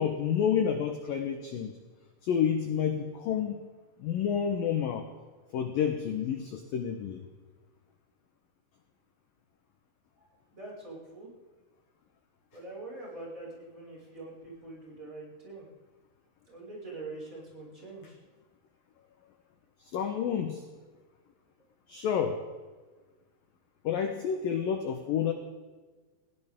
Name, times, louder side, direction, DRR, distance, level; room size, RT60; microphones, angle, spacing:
voice 1, 0.0-1.7 2.2-3.6 4.0-5.1 5.5-7.2 19.8-20.6 21.9-22.4 23.8-25.3, left 8 dB, 80° left, 5 dB, 2.0 m, -29 dB
voice 2, 10.5-11.3 12.5-15.7 16.5-18.1, right 2 dB, 15° right, -5 dB, 5.9 m, -44 dB
20.5 x 16.5 x 3.8 m, 1.3 s
omnidirectional pair, 5.8 m